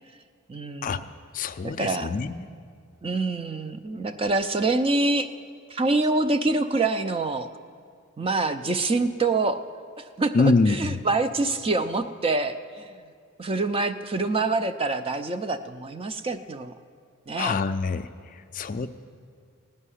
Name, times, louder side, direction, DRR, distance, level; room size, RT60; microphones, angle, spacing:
voice 1, 0.5-1.1 1.6-2.1 3.0-5.3 5.7-7.5 8.2-9.6 10.0-13.1 13.4-16.8 17.3-17.6 18.8-18.9, right 3 dB, 25° right, 10 dB, 0.4 m, -26 dB
voice 2, 1.3-2.5 10.3-11.0 17.3-18.9, left 4 dB, 35° left, 10 dB, 0.4 m, -25 dB
16.0 x 5.5 x 9.9 m, 2.1 s
head